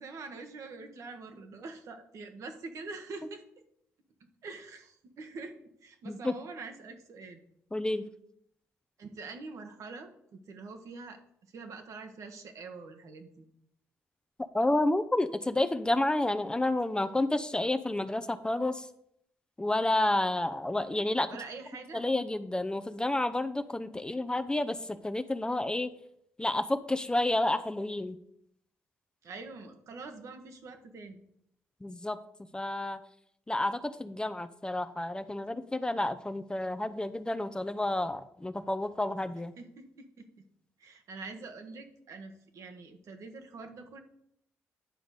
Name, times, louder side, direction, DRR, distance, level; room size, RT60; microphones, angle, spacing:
voice 1, 0.0-3.4 4.4-5.5 5.8-7.4 9.0-11.2 11.5-13.5 21.3-22.0 29.2-31.2 39.6-40.4 40.8-44.0, right 3 dB, 65° right, 6 dB, 1.3 m, -45 dB
voice 2, 7.7-8.1 14.5-18.8 19.6-21.3 21.9-24.8 25.0-25.9 26.4-28.2 31.8-32.2 32.5-33.0 33.5-39.5, left 1 dB, 15° left, 10 dB, 0.6 m, -30 dB
9.7 x 3.9 x 6.5 m, 0.72 s
supercardioid pair, 60°, 6 cm